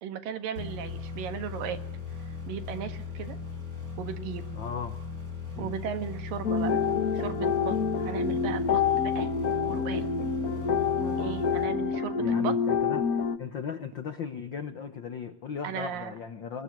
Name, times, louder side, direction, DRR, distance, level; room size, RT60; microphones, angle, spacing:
voice 1, 0.0-1.8 2.5-3.4 4.0-4.4 5.6-6.8 7.1-7.8 8.0-8.8 9.2-9.3 9.7-10.0 11.0-12.5 15.6-16.1, right 8 dB, 80° right, 9 dB, 3.4 m, -36 dB
sound 1, 0.5-12.3, left 5 dB, 25° right, 5.7 m, -38 dB
voice 2, 4.5-5.0 5.6-5.7 12.2-16.6, left 6 dB, 80° left, 10 dB, 1.0 m, -37 dB
sound 2, 6.4-13.4, left 6 dB, 45° left, 1.1 m, -27 dB
23.0 x 21.0 x 7.9 m, 0.70 s
omnidirectional pair, 3.9 m